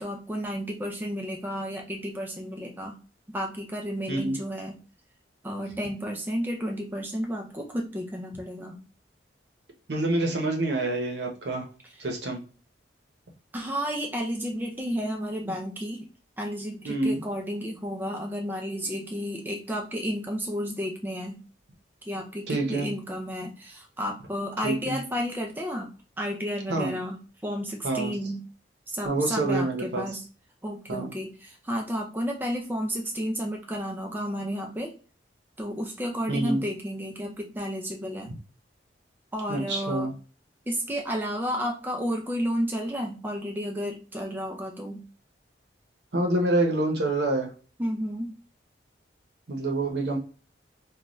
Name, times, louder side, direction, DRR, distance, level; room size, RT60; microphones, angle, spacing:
voice 1, 0.0-3.0 3.3-4.8 5.4-8.8 13.5-16.1 16.4-21.4 22.0-25.9 26.2-27.2 27.4-28.4 28.9-30.2 30.6-34.9 35.6-38.3 39.3-40.1 40.7-45.0 47.8-48.4, equal, 10° right, 1 dB, 0.4 m, -32 dB
voice 2, 9.9-11.6 12.0-12.4 16.8-17.2 22.5-22.9 24.6-25.0 26.7-26.9 27.8-28.1 29.0-30.0 30.9-31.1 36.3-36.6 39.5-40.1 46.1-47.5 49.5-50.2, right 2 dB, 70° right, 2 dB, 0.8 m, -27 dB
2.5 x 2.2 x 3.1 m, 0.37 s
head